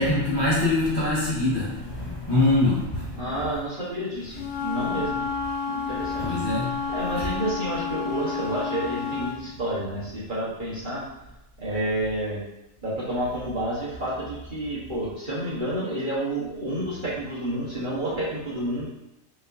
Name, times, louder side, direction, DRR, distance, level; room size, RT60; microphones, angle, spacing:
voice 1, 0.0-3.4 6.2-6.8 7.2-7.3, left 2 dB, 20° left, -9 dB, 1.2 m, -24 dB
voice 2, 3.1-5.3 5.7-6.3 6.9-11.0 11.6-12.4 12.8-18.9, right 1 dB, 40° right, -9 dB, 1.2 m, -30 dB
Wind instrument woodwind instrument, 4.3-9.4, left 5 dB, 85° left, 1.2 m, -30 dB
5.2 x 3.2 x 2.6 m, 0.89 s
omnidirectional pair, 1.4 m